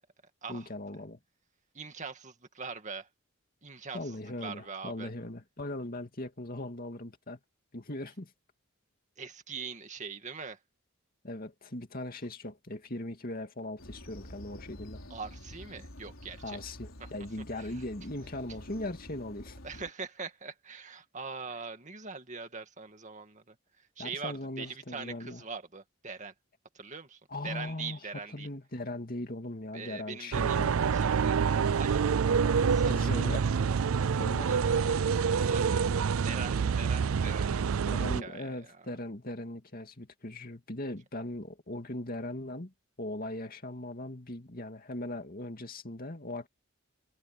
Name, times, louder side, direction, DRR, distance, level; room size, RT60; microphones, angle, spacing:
voice 1, 0.5-1.2 3.9-7.4 7.7-8.3 11.2-15.0 16.4-19.6 24.0-25.4 27.3-28.0 28.3-30.8 32.9-33.4 34.2-34.5 37.9-42.7 43.0-46.5, left 1 dB, 45° left, 2.5 m, -39 dB
voice 2, 1.7-3.1 3.6-5.1 9.2-10.6 15.1-16.6 17.6-17.7 19.6-23.5 24.0-26.3 26.7-28.5 29.7-30.6 30.9-31.4 31.8-33.4 34.3-34.9 35.3-35.9 36.2-37.9 38.2-38.9, right 5 dB, 35° right, 2.2 m, -42 dB
sound 1, 13.8-19.9, left 1 dB, 70° left, 4.5 m, -48 dB
sound 2, 30.3-38.2, right 6 dB, 90° right, 0.5 m, -27 dB
head